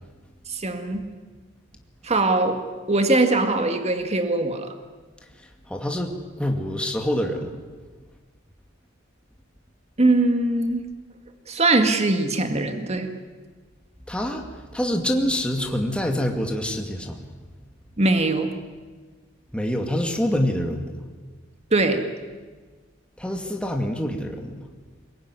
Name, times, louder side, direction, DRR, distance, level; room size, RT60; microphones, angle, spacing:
voice 1, 0.5-1.0 2.0-4.7 10.0-10.9 11.5-13.1 18.0-18.5 21.7-22.1, right 2 dB, 35° right, 6 dB, 2.0 m, -21 dB
voice 2, 5.7-6.1 6.4-7.5 14.1-14.4 14.7-17.2 19.5-21.0 23.2-24.5, equal, 5° left, 2 dB, 2.2 m, -26 dB
22.5 x 21.0 x 9.8 m, 1.4 s
head